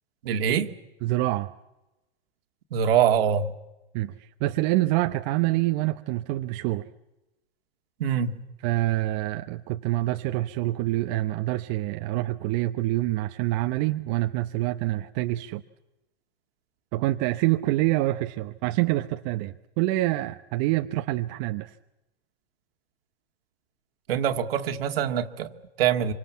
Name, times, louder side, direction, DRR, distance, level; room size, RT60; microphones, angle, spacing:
voice 1, 0.2-0.7 2.7-3.5 8.0-8.4 24.1-26.1, right 8 dB, 65° right, 7 dB, 2.0 m, -24 dB
voice 2, 1.0-1.5 3.9-6.9 8.6-15.6 16.9-21.7, right 17 dB, 45° right, 7 dB, 0.9 m, -26 dB
26.0 x 25.0 x 7.3 m, 0.99 s
hypercardioid pair, 120°, 31 cm